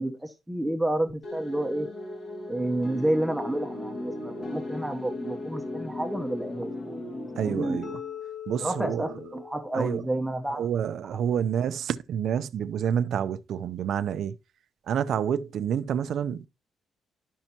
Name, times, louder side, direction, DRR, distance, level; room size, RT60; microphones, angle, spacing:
voice 1, 0.0-1.9 2.5-7.0 7.4-7.8 8.6-10.7, right 1 dB, 5° right, 0.8 m, -30 dB
sound 1, 1.2-9.7, left 2 dB, 45° left, 1.9 m, -37 dB
voice 2, 7.4-8.0 8.5-9.1 9.7-10.0 10.5-14.3 14.9-16.5, right 8 dB, 65° right, 0.5 m, -28 dB
12.0 x 5.5 x 2.8 m
cardioid pair, 125°, 0 cm